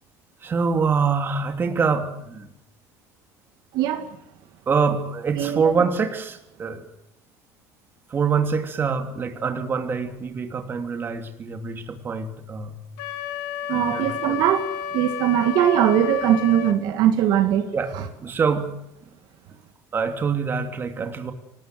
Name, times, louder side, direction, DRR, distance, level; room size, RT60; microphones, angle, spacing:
voice 1, 0.4-2.5 4.7-6.8 8.1-12.8 13.7-14.4 17.7-17.9 18.2-18.7 19.9-21.3, right 5 dB, 25° right, 6 dB, 2.9 m, -25 dB
voice 2, 3.7-4.1 5.3-5.6 13.7-17.7, right 10 dB, 60° right, 7 dB, 2.2 m, -21 dB
Wind instrument woodwind instrument, 13.0-16.8, left 8 dB, 85° left, 2.7 m, -31 dB
25.5 x 19.0 x 7.8 m, 0.84 s
cardioid pair, 130°, 8 cm